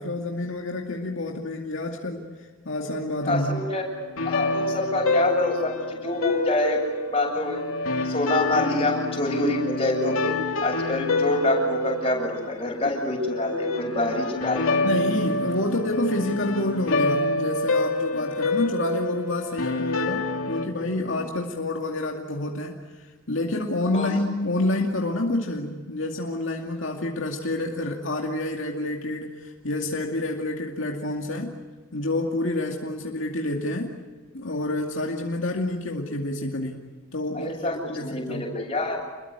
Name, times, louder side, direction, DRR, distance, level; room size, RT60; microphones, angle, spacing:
voice 1, 0.0-2.2 2.7-3.6 14.8-31.6 31.9-34.0 34.3-38.5, left 2 dB, 70° left, 1 dB, 2.4 m, -28 dB
sound 1, 3.2-20.7, left 2 dB, 90° left, 2.7 m, -27 dB
voice 2, 3.3-3.9 4.2-6.8 7.1-7.6 8.0-14.7 18.1-18.2 23.9-24.2 37.3-39.0, left 2 dB, 30° left, 0 dB, 7.9 m, -26 dB
29.5 x 22.0 x 8.3 m, 1.3 s
head